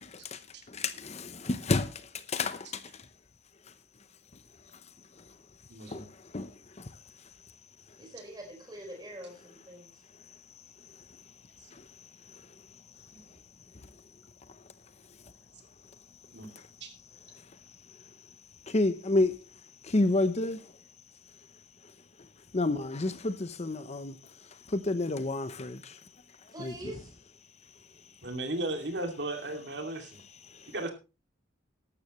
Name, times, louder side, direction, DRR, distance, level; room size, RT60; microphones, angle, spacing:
voice 1, 0.0-0.4 0.7-2.9 5.9-6.9 10.9-11.0 11.7-11.8 12.3-12.5 16.5-16.6 17.3-17.4 17.9-18.0 18.7-19.4 19.8-20.7 22.5-24.2 24.7-26.0 26.6-26.8 30.5-30.7, left 2 dB, 35° left, 0.7 m, -30 dB
voice 2, 5.7-6.0 13.1-13.2 16.3-16.5 16.8-16.9 28.2-30.2 30.7-30.9, right 2 dB, 65° right, 2.5 m, -35 dB
voice 3, 8.0-9.9 26.5-27.1, right 1 dB, 20° right, 4.8 m, -44 dB
14.0 x 12.0 x 3.1 m
head